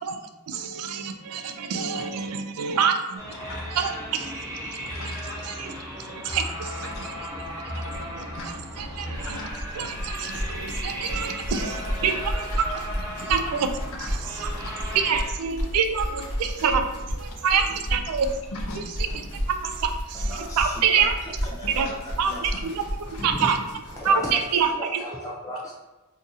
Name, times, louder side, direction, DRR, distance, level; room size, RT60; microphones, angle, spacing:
voice 1, 0.0-3.2 3.8-4.3 4.6-4.8 5.5-5.7 6.2-7.1 7.9-8.1 8.4-9.4 9.8-12.7 13.0-13.7 14.4-14.5 14.9-16.9 17.2-18.3 19.5-21.1 21.8-21.9 22.2-23.6 24.0-25.0, right 6 dB, 85° right, 7 dB, 0.4 m, -26 dB
sound 1, 3.2-15.3, equal, 15° right, 0.7 m, -36 dB
voice 2, 4.9-5.5 6.9-7.1 7.7-7.9 8.3-8.5 9.2-9.5 12.1-12.3 12.7-12.8 14.0-14.1 18.5-19.2 21.6-21.9 22.5-22.6 23.1-23.3, left 2 dB, 65° left, 1 dB, 0.5 m, -40 dB
sound 2, 6.3-6.4 6.6-6.7 6.9-24.7, equal, 85° left, 1.1 m, -33 dB
voice 3, 20.1-21.1 21.5-22.6 23.2-23.5 24.0-25.7, equal, 15° left, -4 dB, 0.3 m, -36 dB
2.7 x 2.4 x 3.9 m, 1.1 s
head